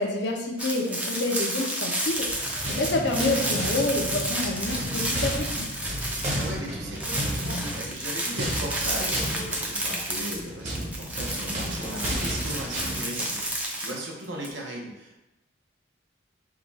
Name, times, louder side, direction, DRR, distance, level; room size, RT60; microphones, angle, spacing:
voice 1, 0.0-5.7, left 2 dB, 60° left, 2 dB, 0.6 m, -28 dB
sound 1, 0.6-6.7 6.9-14.5, right 1 dB, 5° right, 0.5 m, -31 dB
sound 2, 2.1-13.5, equal, 35° right, 0.9 m, -33 dB
voice 2, 6.3-13.4 13.8-15.2, right 1 dB, 70° right, -1 dB, 0.9 m, -37 dB
5.0 x 2.3 x 4.0 m, 0.97 s
head